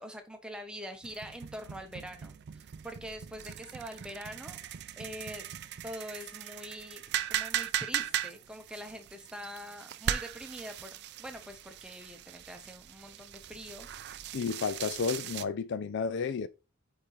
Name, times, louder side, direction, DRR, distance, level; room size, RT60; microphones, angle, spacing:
voice 1, 0.0-4.6 5.0-5.5 5.8-7.0 7.3-14.4, equal, 5° right, 0.9 m, -44 dB
sound 1, 1.0-15.4, right 10 dB, 55° right, 0.4 m, -39 dB
voice 2, 14.3-16.5, left 5 dB, 55° left, 0.4 m, -32 dB
8.7 x 3.7 x 3.2 m
head